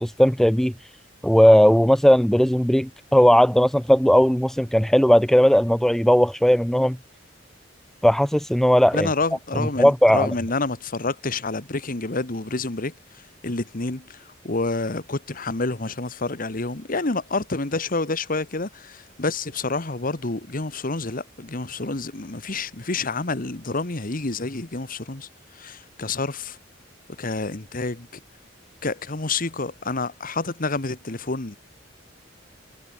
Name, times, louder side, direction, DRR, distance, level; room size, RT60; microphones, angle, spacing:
voice 1, 0.0-0.7 1.2-7.0 8.0-9.1 9.8-10.3, equal, ahead, 0.5 m, -17 dB
voice 2, 8.9-25.3 25.5-26.6 27.2-28.1 28.8-31.6, left 3 dB, 50° left, 1.6 m, -28 dB
head